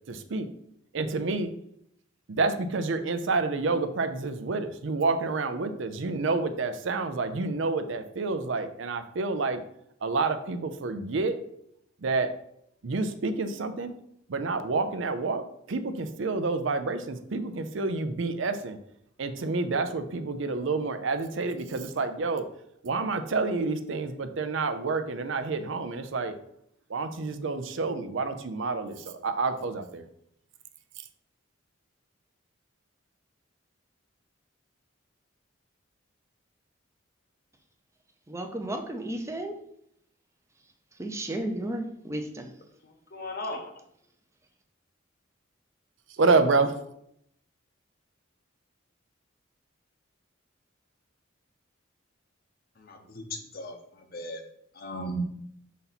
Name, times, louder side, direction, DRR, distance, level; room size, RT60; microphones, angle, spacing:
voice 1, 0.1-0.5 0.9-1.5 2.3-9.6 10.0-11.4 12.0-12.3 12.8-13.9 14.3-18.8 19.2-22.4 22.8-26.4 26.9-30.0 46.1-46.7, right 3 dB, 65° right, 9 dB, 0.5 m, -28 dB
voice 2, 38.3-39.5 41.0-42.5, right 1 dB, 15° right, 4 dB, 0.6 m, -33 dB
voice 3, 43.1-43.7 52.8-53.7 54.1-54.4 54.8-55.2, equal, 45° left, 4 dB, 0.8 m, -36 dB
5.6 x 4.2 x 4.1 m, 0.72 s
head